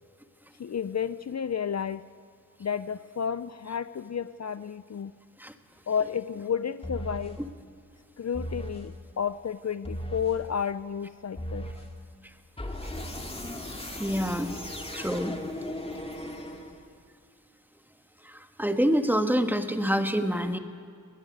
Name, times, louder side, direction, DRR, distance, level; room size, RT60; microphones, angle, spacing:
voice 1, 0.6-2.1 2.6-5.1 5.9-7.4 8.2-11.7, left 7 dB, 55° left, 15 dB, 0.5 m, -31 dB
sound 1, 6.8-7.4 8.3-8.9 9.8-10.4 11.4-11.9 12.6-17.0, equal, 15° left, 2.2 m, -37 dB
voice 2, 14.0-14.6 14.9-15.3 18.2-20.6, equal, 5° right, 7 dB, 1.4 m, -26 dB
21.5 x 18.5 x 8.0 m, 2.4 s
wide cardioid pair, 100°, 33 cm